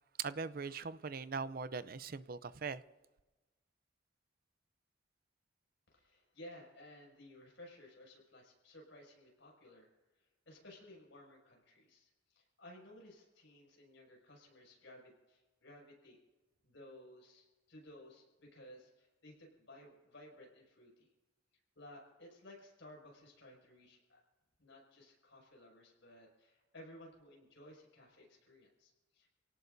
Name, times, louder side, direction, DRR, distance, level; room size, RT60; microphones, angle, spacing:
voice 1, 0.2-2.8, right 5 dB, 50° right, 0.6 m, -41 dB
voice 2, 5.9-9.9 10.1-16.2 16.6-21.1 21.7-24.2 24.6-29.3, left 1 dB, 75° left, 6.4 m, -57 dB
29.0 x 18.0 x 2.7 m
head